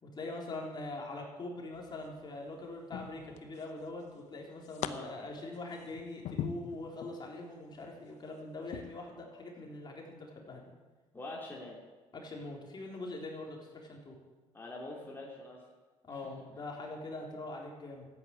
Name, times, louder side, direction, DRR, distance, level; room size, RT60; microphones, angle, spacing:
voice 1, 0.0-10.7 12.1-14.2 16.1-18.1, left 2 dB, 35° left, 0 dB, 3.8 m, -43 dB
sound 1, 1.7-2.2 2.9-3.8 4.1-4.9 5.4-7.2 7.7-7.9 8.7-8.8, left 10 dB, 70° left, 0.9 m, -41 dB
voice 2, 11.1-11.8 14.5-15.6, left 2 dB, 15° left, -3 dB, 3.2 m, -44 dB
13.5 x 9.2 x 8.9 m, 1.3 s
cardioid pair, 100°, 12 cm